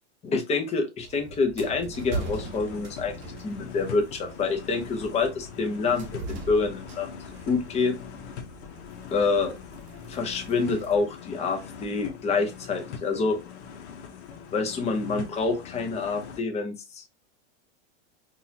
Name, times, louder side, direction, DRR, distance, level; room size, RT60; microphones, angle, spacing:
voice 1, 0.2-3.2 3.4-7.1 7.5-7.9 9.1-9.5 10.1-13.4 14.5-17.0, left 4 dB, 20° left, 0.8 m, -27 dB
sound 1, 1.0-11.0, right 3 dB, 35° right, 0.9 m, -41 dB
sound 2, 1.9-16.4, left 7 dB, 65° left, 0.9 m, -42 dB
3.9 x 2.5 x 2.7 m
supercardioid pair, 135°, 36 cm